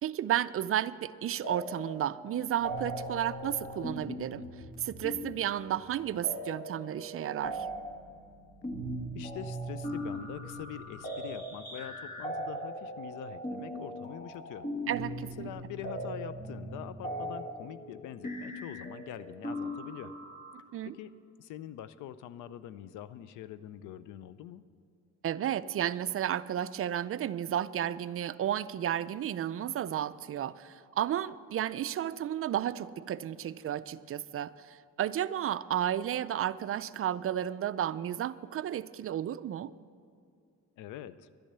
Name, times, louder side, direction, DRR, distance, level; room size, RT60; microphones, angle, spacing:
voice 1, 0.0-4.5 4.8-7.7 14.9-15.5 20.7-20.9 25.2-39.7, right 11 dB, 50° right, 15 dB, 0.4 m, -32 dB
sound 1, 1.4-2.1 2.3-20.6, equal, 30° left, 1.7 m, -39 dB
voice 2, 9.1-14.7 15.4-20.1 20.8-21.1 21.4-24.6 40.8-41.3, left 11 dB, 90° left, 15 dB, 0.6 m, -44 dB
11.5 x 10.5 x 6.8 m, 2.4 s
cardioid pair, 90°, 30 cm